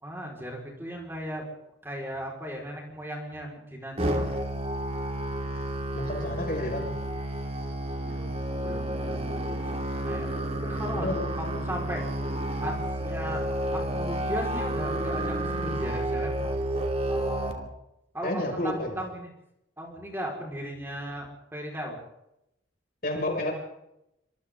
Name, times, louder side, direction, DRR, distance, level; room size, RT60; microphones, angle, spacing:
voice 1, 0.0-1.4 1.8-4.3 8.1-10.3 10.5-12.0 12.6-12.8 13.0-13.4 13.7-16.5 17.1-17.7 18.1-19.3 19.8-22.0, equal, 10° right, -1 dB, 5.1 m, -37 dB
Musical instrument, 4.0-17.5, right 1 dB, 35° right, 2.7 m, -30 dB
voice 2, 5.9-6.9 10.9-11.3 18.2-18.9 23.0-23.5, left 1 dB, 50° left, 1 dB, 6.7 m, -30 dB
27.5 x 26.0 x 3.9 m, 0.85 s
head